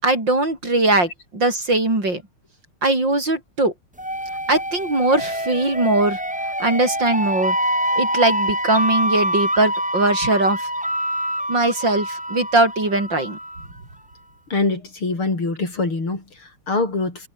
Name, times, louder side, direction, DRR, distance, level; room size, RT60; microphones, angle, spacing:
voice 1, 0.0-2.2 2.8-3.7 4.5-6.2 6.6-7.6 8.0-10.7 11.5-13.4, right 2 dB, 55° right, 8.0 m, -20 dB
sound 1, 4.0-13.7, equal, 5° right, 3.1 m, -25 dB
voice 2, 14.5-17.3, left 3 dB, 75° left, 6.7 m, -24 dB
omnidirectional pair, 2.4 m